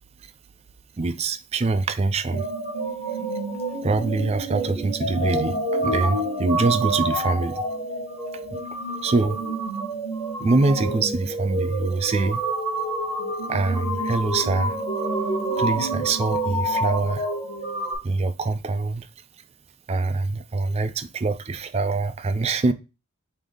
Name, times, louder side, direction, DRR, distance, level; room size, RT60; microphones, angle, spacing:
voice 1, 1.0-2.5 3.8-7.6 8.5-8.6 9.0-9.4 10.4-12.4 13.5-14.8 15.6-17.3 18.0-19.1 19.9-22.7, right 3 dB, 30° right, 0.3 m, -24 dB
sound 1, 2.3-18.0, right 1 dB, 40° left, 2.4 m, -28 dB
4.8 x 2.7 x 3.8 m
head